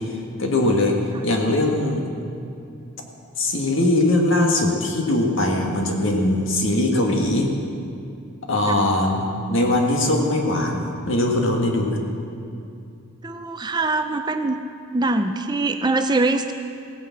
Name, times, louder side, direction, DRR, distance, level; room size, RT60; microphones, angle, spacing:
voice 1, 0.0-1.0 1.2-2.1 3.4-7.5 8.5-12.0, left 1 dB, 60° left, 1 dB, 1.9 m, -21 dB
voice 2, 13.2-14.6 14.9-16.5, right 2 dB, 20° right, 7 dB, 0.5 m, -23 dB
16.5 x 9.8 x 7.3 m, 2.5 s
head